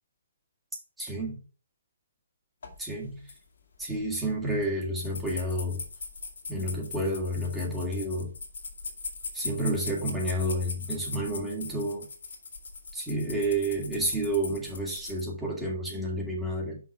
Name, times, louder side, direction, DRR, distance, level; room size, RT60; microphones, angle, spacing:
voice 1, 1.0-1.4 2.8-3.3 3.8-5.8 6.5-8.3 9.3-12.1 12.9-16.8, right 1 dB, 10° right, -3 dB, 2.2 m, -30 dB
sound 1, 2.6-2.8 3.1-3.4 3.8-4.1 4.5-4.6 5.0-15.2, left 4 dB, 65° left, 2.0 m, -40 dB
5.9 x 4.0 x 5.4 m, 0.37 s
hypercardioid pair, 140°, 0 cm